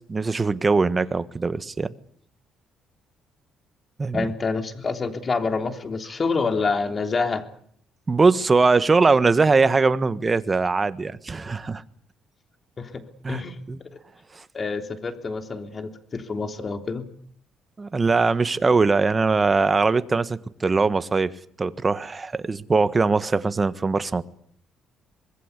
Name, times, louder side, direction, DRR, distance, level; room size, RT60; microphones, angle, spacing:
voice 1, 0.1-1.9 4.0-4.3 8.1-11.8 13.2-13.4 13.7-13.8 14.4-14.5 17.8-21.3 21.6-24.2, right 4 dB, 30° right, 13 dB, 1.4 m, -21 dB
voice 2, 4.1-7.4 12.8-13.6 14.5-17.1, left 4 dB, 35° left, 6 dB, 3.4 m, -27 dB
24.5 x 21.0 x 8.3 m, 0.64 s
cardioid pair, 90°, 0 cm